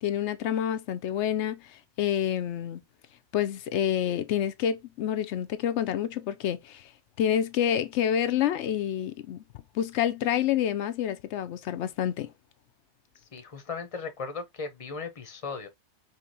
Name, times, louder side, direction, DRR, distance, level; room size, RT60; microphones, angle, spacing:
voice 1, 0.0-2.8 3.3-6.9 7.2-9.4 9.7-12.3, left 10 dB, 85° left, 0.9 m, -28 dB
voice 2, 13.3-15.7, left 4 dB, 35° left, 0.9 m, -37 dB
5.0 x 3.2 x 2.8 m
omnidirectional pair, 1.1 m